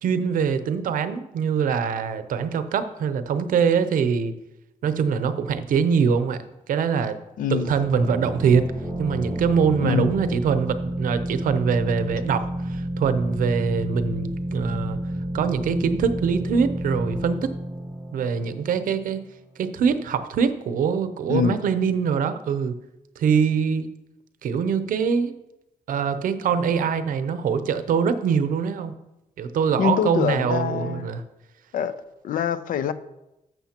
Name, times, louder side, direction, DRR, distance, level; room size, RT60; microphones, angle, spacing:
voice 1, 0.0-4.4 4.8-7.2 7.5-8.7 9.0-15.0 15.3-17.5 18.1-19.3 19.6-22.7 23.2-23.9 24.4-25.3 25.9-29.0 29.4-31.2, right 6 dB, 75° right, 11 dB, 0.6 m, -23 dB
voice 2, 7.4-7.7 9.8-10.1 21.3-21.6 29.8-31.1 31.7-31.9 32.2-32.9, left 8 dB, 70° left, 14 dB, 0.5 m, -24 dB
sound 1, 7.6-19.1, equal, 15° left, 2.4 m, -30 dB
11.5 x 6.9 x 2.9 m, 0.93 s
wide cardioid pair, 170°, 14 cm